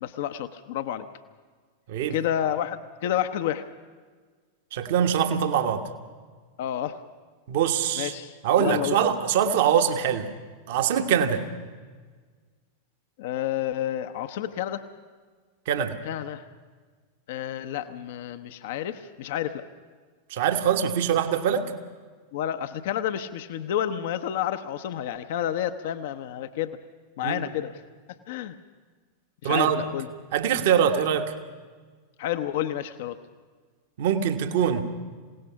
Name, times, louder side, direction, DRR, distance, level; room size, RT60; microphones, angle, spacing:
voice 1, 0.0-1.1 2.1-3.6 6.6-7.0 8.0-9.0 13.2-14.8 16.1-16.4 17.3-19.6 22.3-26.8 27.2-27.8 28.3-28.5 29.4-30.1 32.2-33.2, left 11 dB, 55° left, 10 dB, 0.8 m, -30 dB
voice 2, 1.9-2.2 4.7-5.9 7.5-8.1 8.4-10.3 10.7-11.5 15.7-16.0 20.3-21.7 27.2-27.4 29.4-29.8 30.3-31.3 34.0-34.8, right 8 dB, 55° right, 7 dB, 1.3 m, -23 dB
27.0 x 17.5 x 5.8 m, 1.5 s
figure-of-eight pair, 90°, 0 cm